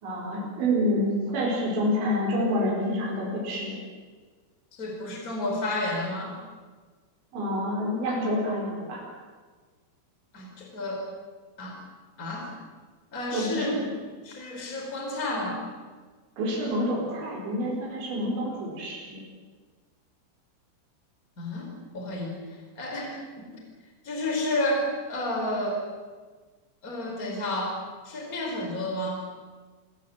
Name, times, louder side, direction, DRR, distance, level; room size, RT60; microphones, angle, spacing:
voice 1, 0.0-3.8 7.3-9.0 13.3-13.9 16.4-19.2, equal, 90° right, -2 dB, 6.8 m, -28 dB
voice 2, 4.8-6.4 10.3-11.1 11.6-11.7 12.2-12.5 13.1-13.8 14.2-15.6 21.4-22.4 22.8-23.6 24.0-25.8 26.8-27.8 28.0-29.3, left 1 dB, 20° left, 1 dB, 4.7 m, -31 dB
28.5 x 16.5 x 7.9 m, 1.4 s
omnidirectional pair, 5.1 m